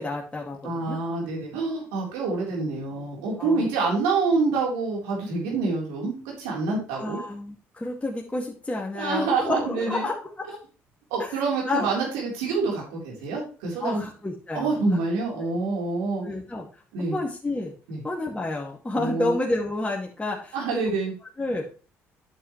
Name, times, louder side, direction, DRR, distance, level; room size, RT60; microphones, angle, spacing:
voice 1, 0.0-1.0 3.4-3.7 6.9-10.2 11.2-11.9 13.8-15.0 15.4-15.5 16.2-17.7 18.0-20.9 21.4-21.7, left 2 dB, 15° left, -2 dB, 2.3 m, -30 dB
voice 2, 0.6-7.2 8.9-10.1 11.1-14.0 14.5-16.2 16.9-17.2 17.9-18.0 18.9-19.3 20.5-21.1, right 3 dB, 85° right, -2 dB, 3.9 m, -27 dB
9.0 x 7.9 x 3.2 m, 0.36 s
hypercardioid pair, 55°, 7 cm